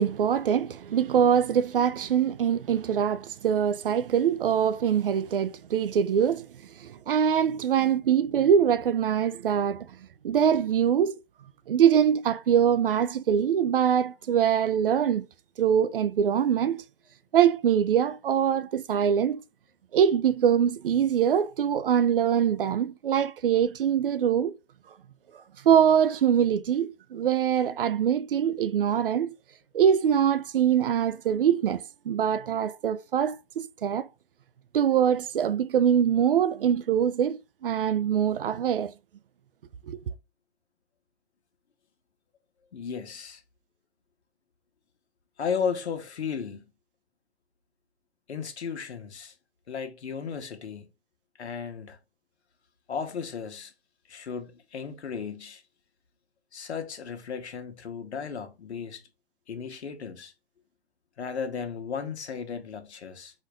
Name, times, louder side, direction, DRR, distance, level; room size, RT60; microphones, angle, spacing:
voice 1, 0.0-6.5 6.8-9.9 10.2-11.2 11.7-15.3 15.6-16.8 17.3-19.4 19.9-24.5 25.7-29.3 29.7-34.1 34.7-37.4 37.6-38.9 39.9-40.0, right 8 dB, 55° right, 0.4 m, -23 dB
voice 2, 42.7-43.4 45.4-46.6 48.3-49.3 49.7-50.9 51.4-52.0 52.9-53.7 54.1-55.6 56.5-59.0 59.5-60.3 61.2-63.3, left 6 dB, 80° left, 1.1 m, -35 dB
4.2 x 2.6 x 4.6 m
hypercardioid pair, 160°, 33 cm